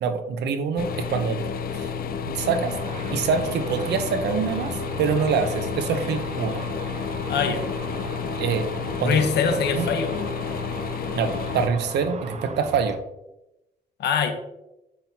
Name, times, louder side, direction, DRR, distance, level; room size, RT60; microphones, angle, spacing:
voice 1, 0.0-1.4 1.7-1.9 2.2-2.8 3.1-6.6 8.4-8.7 9.0-9.3 9.7-9.9 11.2-13.0, right 6 dB, 90° right, 8 dB, 0.8 m, -25 dB
sound 1, 0.8-11.7, left 6 dB, 60° left, 0.6 m, -30 dB
Car / Traffic noise roadway noise / Engine, 2.4-13.0, right 5 dB, 40° right, 0.6 m, -38 dB
voice 2, 7.3-7.6 9.0-10.3 14.0-14.3, left 6 dB, 80° left, 6 dB, 1.0 m, -23 dB
7.5 x 5.7 x 2.8 m, 0.92 s
cardioid pair, 105°, 17 cm